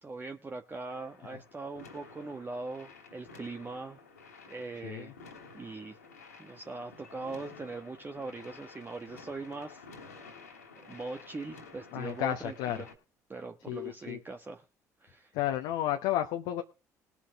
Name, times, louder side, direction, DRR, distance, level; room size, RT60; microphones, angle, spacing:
voice 1, 0.0-4.0 4.5-5.1 5.5-6.0 6.4-10.3 10.8-12.9 13.3-14.6 15.0-15.3, right 3 dB, 25° right, 5 dB, 1.3 m, -41 dB
sound 1, 0.9-12.9, left 4 dB, 90° left, 2.8 m, -52 dB
voice 2, 4.8-5.1 11.9-12.8 13.7-14.2 15.3-16.6, left 13 dB, 70° left, 4 dB, 1.2 m, -32 dB
20.5 x 7.3 x 3.7 m, 0.30 s
hypercardioid pair, 55°, 8 cm